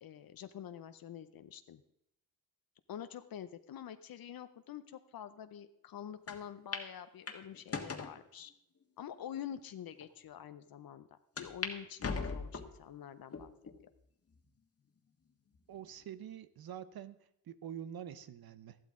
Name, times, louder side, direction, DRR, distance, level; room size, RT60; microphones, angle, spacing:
voice 1, 0.0-1.8 2.9-8.5 9.0-13.5 13.8-13.9, left 9 dB, 75° left, 11 dB, 0.6 m, -47 dB
sound 1, 6.3-6.4 6.7-6.9 7.3-8.1 8.8-8.9 9.6-9.7 10.0-10.1 11.4-11.7 12.0-12.8 13.3-13.8 14.3-14.4 15.5-16.0, left 4 dB, 40° left, 1.4 m, -39 dB
voice 2, 15.7-17.2 17.5-18.8, right 9 dB, 85° right, 14 dB, 0.7 m, -46 dB
13.5 x 12.0 x 3.7 m, 0.77 s
wide cardioid pair, 110°, 35 cm